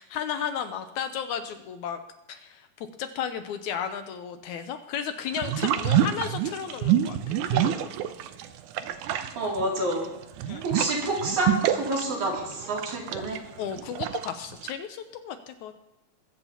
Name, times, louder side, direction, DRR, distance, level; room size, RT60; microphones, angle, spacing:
voice 1, 0.0-2.0 2.3-7.9 10.5-10.6 13.6-15.8, left 8 dB, 75° left, 8 dB, 1.9 m, -34 dB
sound 1, 5.3-8.5 8.7-14.7, right 11 dB, 80° right, 2.0 m, -27 dB
voice 2, 9.1-10.1 10.6-13.4, right 1 dB, 60° right, -2 dB, 4.1 m, -28 dB
21.5 x 14.0 x 2.9 m, 0.95 s
omnidirectional pair, 3.9 m